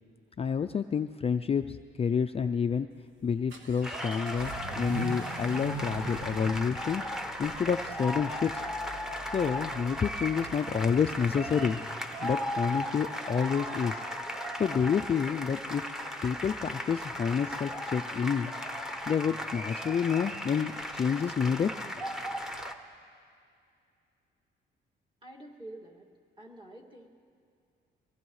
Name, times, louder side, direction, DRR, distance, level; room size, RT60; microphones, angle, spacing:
voice 1, 0.4-2.9 3.2-7.0 7.4-8.5 9.3-11.8 12.2-14.0 14.4-15.8 16.2-18.5 19.1-21.7, left 6 dB, 30° left, 7 dB, 0.4 m, -29 dB
Vehicle / Accelerating revving vroom, 2.9-22.7, right 3 dB, 85° right, 1.5 m, -46 dB
sound 1, 3.8-22.7, equal, 5° right, 1.0 m, -36 dB
voice 2, 25.2-26.1 26.4-27.1, right 1 dB, 25° right, -2 dB, 2.2 m, -47 dB
23.5 x 18.0 x 3.2 m, 2.4 s
cardioid pair, 90°, 20 cm